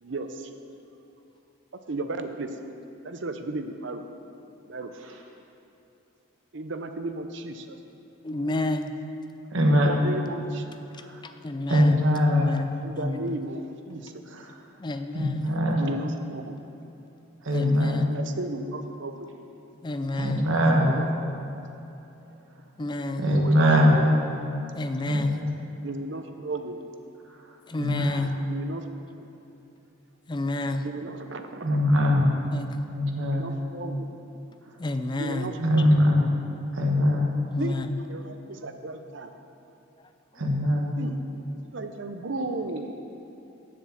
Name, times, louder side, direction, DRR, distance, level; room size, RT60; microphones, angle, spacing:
voice 1, 0.0-0.5 1.9-2.5 3.0-4.0 4.7-4.9 6.5-7.8 9.7-10.7 12.8-14.1 15.8-16.6 18.1-19.3 20.8-21.5 22.9-24.0 25.8-26.8 28.2-28.8 29.2-29.3 30.8-31.8 33.1-34.1 35.2-36.0 37.6-39.3 41.0-41.2 41.7-42.9, right 2 dB, 60° right, 7 dB, 0.7 m, -35 dB
voice 2, 8.2-9.0 11.2-13.4 14.8-15.5 15.9-16.1 17.5-18.1 19.8-21.0 22.8-23.3 24.7-25.4 27.7-28.4 30.3-30.9 32.5-32.8 34.8-35.5 37.5-38.0, left 2 dB, 20° left, 8 dB, 0.4 m, -31 dB
voice 3, 9.5-10.0 11.0-11.2 11.7-12.5 14.3-14.5 15.1-15.9 17.4-18.0 20.2-21.0 23.2-24.0 25.0-25.5 27.8-28.3 31.6-32.3 32.9-33.5 35.6-36.2 36.7-37.3 40.3-40.9, equal, 75° right, 0 dB, 1.3 m, -22 dB
7.5 x 7.2 x 7.2 m, 2.9 s
head